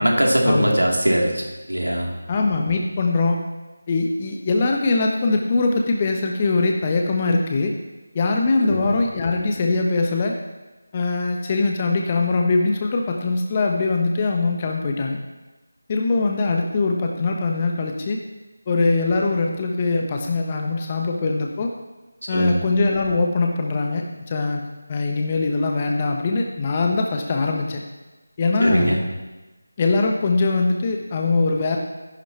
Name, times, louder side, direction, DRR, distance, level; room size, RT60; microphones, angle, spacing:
voice 1, 0.0-1.4 1.7-2.1 8.6-8.8 22.3-22.6 28.6-29.0, right 1 dB, 85° right, -1 dB, 2.8 m, -20 dB
voice 2, 2.3-3.5 3.9-7.7 8.1-10.3 10.9-15.2 15.9-18.2 18.7-21.7 22.3-24.6 24.9-27.8 28.4-29.0 29.8-31.8, left 3 dB, 25° left, 2 dB, 0.9 m, -22 dB
14.0 x 11.0 x 3.0 m, 1.1 s
figure-of-eight pair, 165°, 0 cm